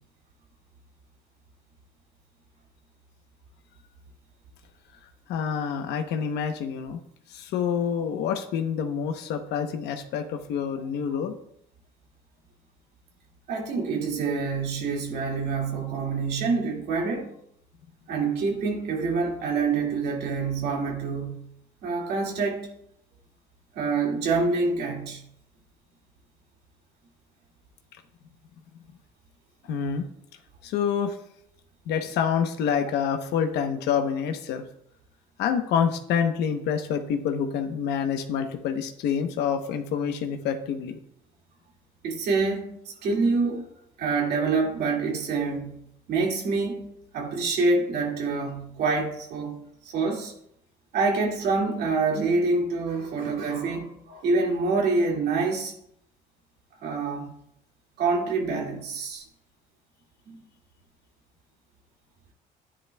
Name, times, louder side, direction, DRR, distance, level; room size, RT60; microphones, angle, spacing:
voice 1, 5.3-7.0 7.3-11.3 29.7-30.0 30.6-31.2 31.9-34.6 35.4-41.0, left 7 dB, 80° left, 5 dB, 0.9 m, -27 dB
voice 2, 13.5-17.3 18.1-21.4 21.8-22.7 23.7-25.2 42.0-43.7 44.0-45.8 46.1-46.9 47.1-50.3 50.9-55.7 56.8-57.3 58.0-59.2 60.3-60.4, right 4 dB, 70° right, 0 dB, 2.2 m, -26 dB
11.0 x 10.0 x 2.3 m, 0.73 s
cardioid pair, 110°, 17 cm